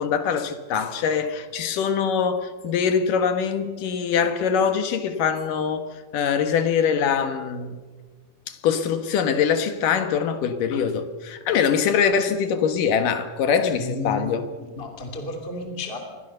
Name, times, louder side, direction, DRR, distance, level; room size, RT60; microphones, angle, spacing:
voice 1, 0.0-5.9 6.1-7.8 8.5-14.5, left 7 dB, 65° left, 2.9 m, -23 dB
voice 2, 13.7-14.3 14.6-16.0, left 2 dB, 15° left, 2.8 m, -32 dB
28.5 x 22.5 x 6.8 m
omnidirectional pair, 4.4 m